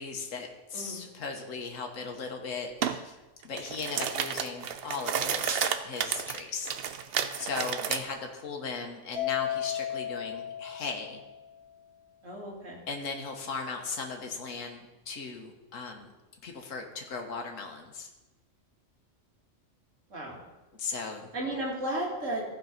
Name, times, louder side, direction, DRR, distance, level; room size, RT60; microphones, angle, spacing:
voice 1, 0.0-3.2 3.4-6.7 7.4-11.2 12.9-16.1 16.4-18.1 20.8-21.3, left 4 dB, 85° left, 3 dB, 1.5 m, -37 dB
sound 1, 2.8-3.0 3.4-8.0, right 8 dB, 60° right, 0.7 m, -31 dB
Mallet percussion, 9.1-11.6, left 11 dB, 10° right, 1.8 m, -34 dB
voice 2, 12.2-12.8 20.1-20.4 21.3-22.4, right 1 dB, 80° right, -3 dB, 2.7 m, -34 dB
15.0 x 5.4 x 5.2 m, 1.1 s
omnidirectional pair, 1.3 m